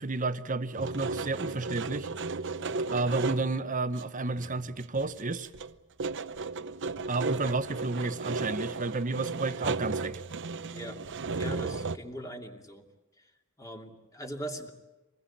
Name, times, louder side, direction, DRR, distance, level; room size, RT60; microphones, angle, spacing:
voice 1, 0.0-2.1 2.9-5.5 7.1-10.2, right 3 dB, 40° right, 1.1 m, -31 dB
sound 1, 0.8-3.6 3.9-4.0 4.4-5.2 5.5-12.0, right 4 dB, 60° right, 0.8 m, -35 dB
voice 2, 11.3-12.9 13.2-13.3 13.6-14.7, right 1 dB, 15° left, 2.6 m, -40 dB
26.0 x 21.5 x 8.8 m
head